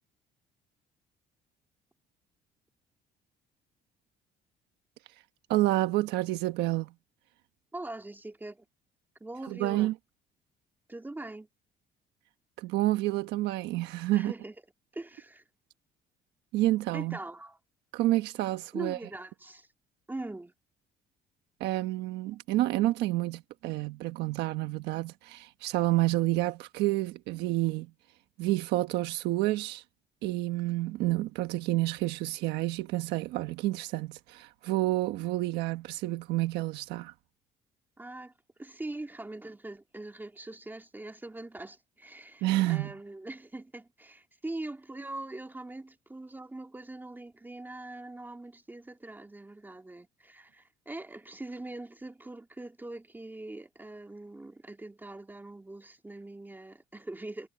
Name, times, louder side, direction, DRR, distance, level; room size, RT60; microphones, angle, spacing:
voice 1, 5.5-6.9 9.5-9.9 12.6-14.3 16.5-17.2 17.9-19.0 21.6-27.9 28.4-29.8 30.2-37.1 42.4-42.9, right 17 dB, 90° right, 1.3 m, -29 dB
voice 2, 7.7-8.7 9.2-9.9 10.9-11.5 14.1-14.6 14.9-15.4 16.9-17.6 18.7-19.7 20.1-20.5 38.0-38.3 38.6-57.5, right 2 dB, 10° right, 2.2 m, -42 dB
cardioid pair, 110°, 17 cm